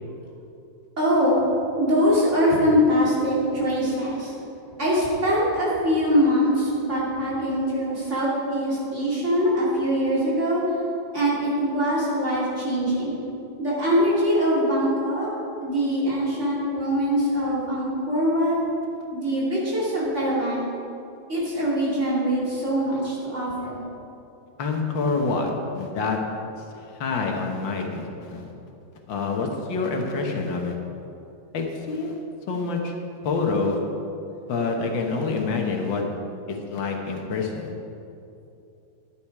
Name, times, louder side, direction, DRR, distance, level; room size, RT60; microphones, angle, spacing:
voice 1, 1.0-4.3 4.8-13.2 13.6-15.3 15.6-18.6 19.1-20.7 21.3-23.8, equal, 40° right, -7 dB, 3.3 m, -23 dB
voice 2, 24.6-26.2 27.0-28.5 29.1-30.8 31.5-32.9 33.2-33.8 34.5-36.0 36.5-37.7, left 4 dB, 85° left, 2 dB, 2.0 m, -27 dB
12.0 x 10.0 x 4.8 m, 2.7 s
omnidirectional pair, 2.0 m